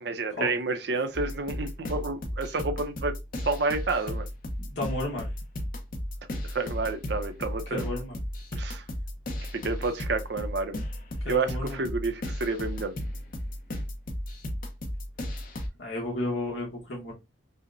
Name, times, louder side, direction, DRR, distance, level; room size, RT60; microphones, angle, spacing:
voice 1, 0.0-3.1 3.4-4.3 6.5-7.9 8.5-8.8 9.5-10.8 11.3-12.9, right 3 dB, 60° right, 0.6 m, -30 dB
sound 1, 1.1-15.7, left 1 dB, 50° left, 0.8 m, -35 dB
voice 2, 4.6-5.3 7.7-8.2 11.2-11.8 15.8-17.1, left 1 dB, 75° left, 1.1 m, -32 dB
5.5 x 2.1 x 2.5 m
head